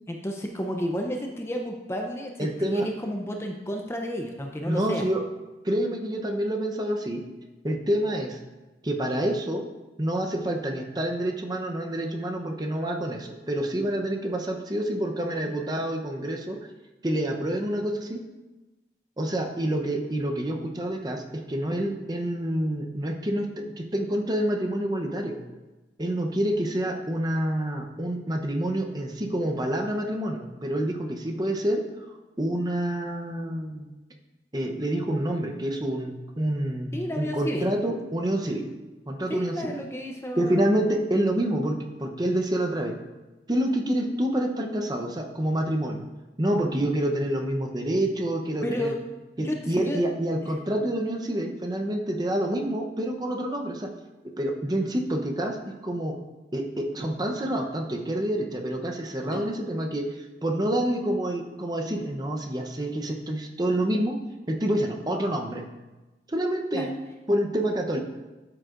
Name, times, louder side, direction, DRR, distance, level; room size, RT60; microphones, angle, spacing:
voice 1, 0.1-5.1 36.9-37.7 39.3-40.7 48.6-49.0 49.4-50.0 50.4-50.5 59.3-59.4 66.7-66.9, equal, 15° left, 2 dB, 0.5 m, -32 dB
voice 2, 2.4-2.9 4.6-5.2 5.6-7.2 7.6-8.4 8.8-9.7 10.0-16.6 17.0-18.2 19.2-21.2 21.5-23.5 23.8-25.4 26.0-31.8 32.4-33.9 34.5-38.7 39.1-39.8 40.4-43.0 43.5-46.1 46.4-48.9 49.4-53.9 54.4-55.6 55.8-56.1 56.5-64.1 64.5-65.6 66.3-66.9 67.3-68.0, right 1 dB, 20° right, 2 dB, 0.7 m, -27 dB
12.5 x 7.8 x 2.5 m, 1.1 s
head